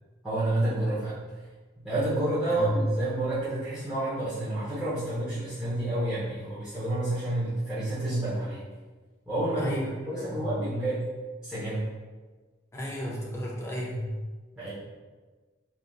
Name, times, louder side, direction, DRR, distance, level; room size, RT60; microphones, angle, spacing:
voice 1, 0.2-1.2 1.8-8.6 9.3-9.7 10.1-11.0 11.4-11.8 14.6-14.7, right 1 dB, 5° right, -14 dB, 0.8 m, -29 dB
voice 2, 2.5-2.8 9.6-10.5 12.7-14.1, left 1 dB, 15° left, -3 dB, 0.4 m, -33 dB
3.2 x 2.6 x 2.4 m, 1.3 s
head